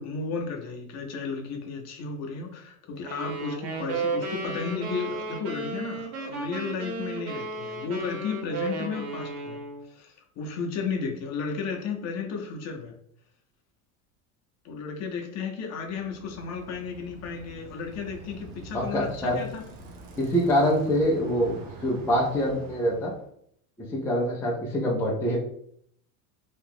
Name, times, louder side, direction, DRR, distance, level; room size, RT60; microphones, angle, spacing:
voice 1, 0.0-9.6 9.9-12.9 14.6-19.6, left 5 dB, 40° left, 2 dB, 0.7 m, -34 dB
sound 1, 3.0-9.9, right 3 dB, 85° right, 1.1 m, -34 dB
Bicycle, 15.7-23.3, right 3 dB, 55° right, 0.8 m, -45 dB
voice 2, 18.7-19.4 20.2-23.1 23.9-25.4, equal, 5° left, -3 dB, 0.4 m, -25 dB
2.8 x 2.4 x 3.6 m, 0.67 s
supercardioid pair, 130°, 43 cm